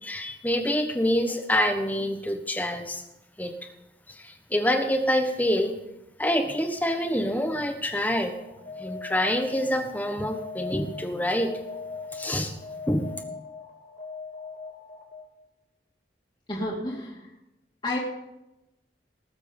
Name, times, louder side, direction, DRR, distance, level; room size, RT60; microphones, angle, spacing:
voice 1, 0.0-3.0 3.4-3.5 4.1-5.7 6.2-8.3 8.8-11.5 12.1-12.6 12.9-13.1, equal, 10° left, 5 dB, 1.2 m, -26 dB
Alarm, 8.3-15.4, left 4 dB, 50° left, 2.9 m, -40 dB
voice 2, 16.5-17.3 17.8-18.0, left 1 dB, 25° left, -5 dB, 2.3 m, -30 dB
19.0 x 7.5 x 5.3 m, 0.93 s
head